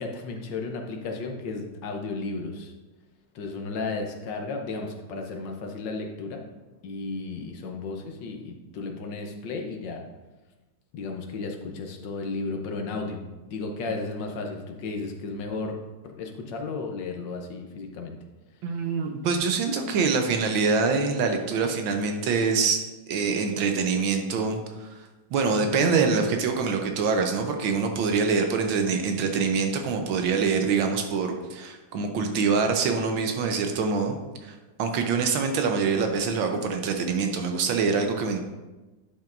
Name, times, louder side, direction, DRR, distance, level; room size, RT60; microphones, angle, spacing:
voice 1, 0.0-2.7 3.3-6.4 6.8-10.0 10.9-15.7 16.0-18.2, left 3 dB, 65° left, 3 dB, 1.4 m, -34 dB
voice 2, 18.6-24.9 25.3-34.2 34.4-38.4, right 5 dB, 75° right, 4 dB, 1.5 m, -25 dB
10.5 x 5.8 x 2.5 m, 1.1 s
omnidirectional pair, 2.3 m